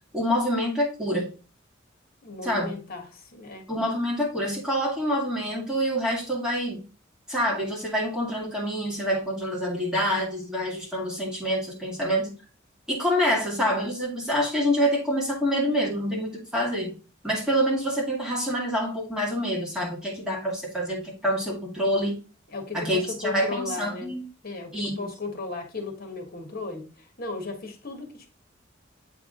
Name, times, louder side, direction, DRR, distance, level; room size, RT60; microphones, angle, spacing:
voice 1, 0.1-1.3 2.4-2.8 3.7-6.8 7.3-12.3 12.9-16.9 17.2-22.1 22.7-24.2 24.7-25.1, equal, 5° right, -3 dB, 2.2 m, -26 dB
voice 2, 2.2-3.7 22.5-24.1 24.4-28.3, left 3 dB, 50° left, 4 dB, 1.5 m, -36 dB
8.1 x 3.6 x 3.7 m, 0.35 s
head